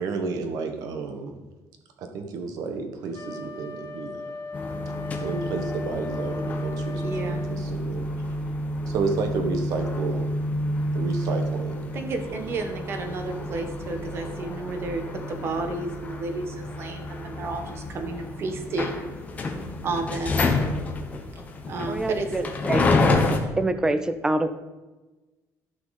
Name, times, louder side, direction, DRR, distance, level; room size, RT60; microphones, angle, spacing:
voice 1, 0.0-1.3 2.1-4.2 5.2-8.1 8.9-10.3 10.9-11.8, right 4 dB, 70° right, 5 dB, 1.4 m, -31 dB
Wind instrument woodwind instrument, 3.1-7.6, left 2 dB, 60° left, 1.5 m, -37 dB
sound 1, 4.5-23.4, left 2 dB, 25° left, 1.1 m, -29 dB
voice 2, 7.0-7.5 11.9-19.0 19.8-20.5 21.7-22.3, right 3 dB, 40° right, 6 dB, 1.3 m, -31 dB
voice 3, 21.9-22.9 23.6-24.5, right 2 dB, 10° right, 11 dB, 0.5 m, -25 dB
14.0 x 5.8 x 4.2 m, 1.2 s
cardioid pair, 160°, 6 cm